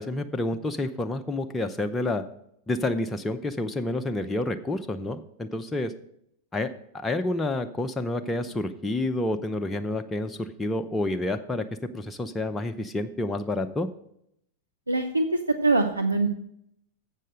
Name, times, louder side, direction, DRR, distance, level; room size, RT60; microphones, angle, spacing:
voice 1, 0.0-2.2 2.7-5.9 6.5-11.7 11.9-13.9, left 2 dB, 10° left, 5 dB, 0.5 m, -29 dB
voice 2, 14.9-16.3, right 2 dB, 85° right, 5 dB, 0.5 m, -23 dB
7.5 x 6.5 x 6.4 m, 0.74 s
figure-of-eight pair, 90°, 0 cm